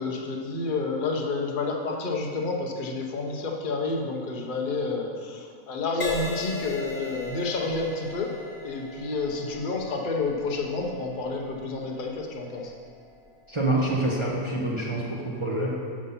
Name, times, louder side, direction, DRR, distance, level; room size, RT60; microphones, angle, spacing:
voice 1, 0.0-8.3 8.6-12.7, left 3 dB, 40° left, 1 dB, 0.8 m, -29 dB
Crash cymbal, 6.0-13.6 14.3-14.6, left 3 dB, 55° left, 1.4 m, -40 dB
voice 2, 13.5-15.8, right 1 dB, 25° right, -4 dB, 0.6 m, -26 dB
7.5 x 5.5 x 5.6 m, 2.1 s
omnidirectional pair, 1.7 m